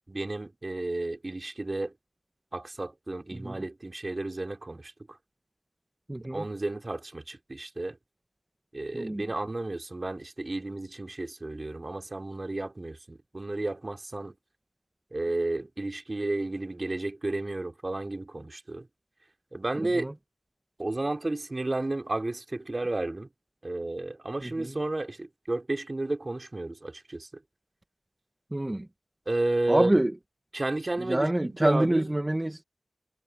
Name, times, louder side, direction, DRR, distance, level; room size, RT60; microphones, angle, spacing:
voice 1, 0.1-1.9 2.5-4.9 6.3-8.0 8.7-14.4 15.1-18.9 19.5-20.1 20.8-23.3 23.6-27.3 29.3-29.9 30.5-32.1, right 2 dB, 45° right, 3.7 m, -32 dB
voice 2, 3.3-3.6 6.1-6.4 8.9-9.2 19.9-20.1 24.4-24.8 28.5-28.9 29.7-30.1 31.0-32.6, right 1 dB, 25° right, 1.6 m, -27 dB
cardioid pair, 45°, 0 cm